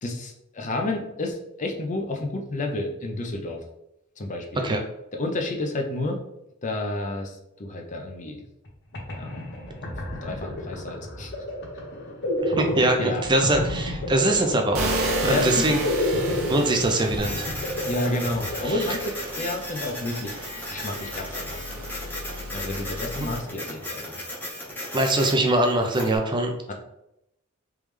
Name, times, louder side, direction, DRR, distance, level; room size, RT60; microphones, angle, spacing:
voice 1, 0.0-3.6 4.2-4.7 5.1-6.2 6.6-8.4 9.1-9.5 9.8-11.3 13.0-13.2 15.2-15.8 17.9-20.4 20.7-21.6 22.5-24.2 26.7-26.8, left 2 dB, 35° left, 2 dB, 0.5 m, -30 dB
sound 1, 8.7-8.8 8.9-19.5, left 1 dB, 55° left, 0.9 m, -30 dB
voice 2, 12.4-14.9 15.2-15.9 16.5-17.4 18.6-18.7 24.9-26.5, right 1 dB, 20° right, 3 dB, 0.4 m, -22 dB
sound 2, 14.7-23.4, right 2 dB, 75° right, 0.8 m, -34 dB
Printer, 17.2-26.2, left 1 dB, 10° left, 0.8 m, -36 dB
3.5 x 3.1 x 3.2 m, 0.84 s
head